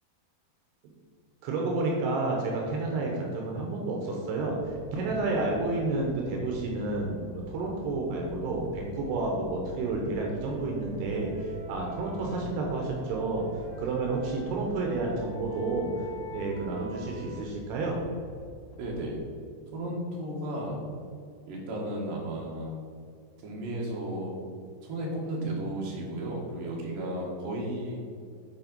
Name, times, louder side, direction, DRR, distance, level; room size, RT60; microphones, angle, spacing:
voice 1, 1.4-13.4 13.8-15.9 16.3-18.0, right 3 dB, 80° right, -1 dB, 3.0 m, -30 dB
sound 1, 4.5-19.2, left 3 dB, 80° left, 3.0 m, -48 dB
Wind instrument woodwind instrument, 10.1-14.5 15.1-17.4, left 1 dB, 50° left, 2.2 m, -46 dB
voice 2, 18.8-19.2 19.7-20.8 21.5-22.8 23.4-24.4 24.8-28.0, right 1 dB, 65° right, -3 dB, 3.0 m, -34 dB
8.7 x 4.4 x 5.3 m, 2.3 s
omnidirectional pair, 4.7 m